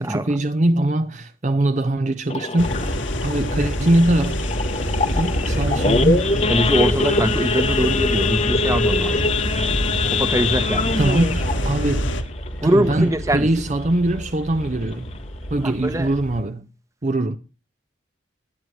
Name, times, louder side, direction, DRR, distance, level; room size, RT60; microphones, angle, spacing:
voice 1, 0.0-4.4 5.1-6.2 11.0-12.1 12.6-15.2 15.5-16.7 17.0-17.4, right 1 dB, 35° right, 0.6 m, -22 dB
Idling / Accelerating revving vroom / Sawing, 2.3-13.4 13.8-14.0 14.2-14.3 14.8-15.1 15.6-15.7 15.9-16.2, left 3 dB, 30° left, 1.0 m, -24 dB
sound 1, 2.6-12.2, equal, 70° left, 1.8 m, -26 dB
sound 2, 4.8-16.4, equal, 90° left, 6.5 m, -32 dB
voice 2, 6.5-9.3 10.1-11.0 12.6-13.5 15.6-16.1, right 1 dB, 15° right, 1.0 m, -22 dB
21.0 x 9.5 x 3.2 m
head